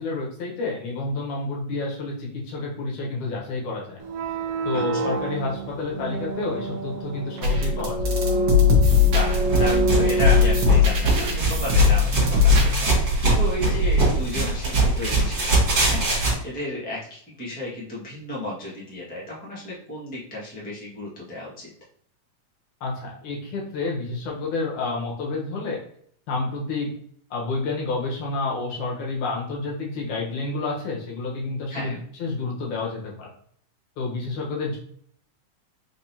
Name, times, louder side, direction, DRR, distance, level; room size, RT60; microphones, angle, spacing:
voice 1, 0.0-4.0 4.6-8.0 13.6-13.8 22.8-25.8 26.3-26.9 27.3-33.3 34.0-34.8, left 3 dB, 75° left, -2 dB, 2.6 m, -29 dB
sound 1, 4.0-11.0, right 2 dB, 85° right, 1.3 m, -27 dB
voice 2, 4.7-5.1 9.0-16.1 16.4-21.7 31.7-32.0, left 1 dB, 10° left, -6 dB, 0.4 m, -33 dB
sound 2, 7.4-12.9, left 7 dB, 60° right, 1.3 m, -20 dB
sound 3, 9.2-16.3, right 2 dB, 40° right, 2.6 m, -22 dB
5.2 x 3.5 x 2.8 m, 0.62 s
omnidirectional pair, 3.5 m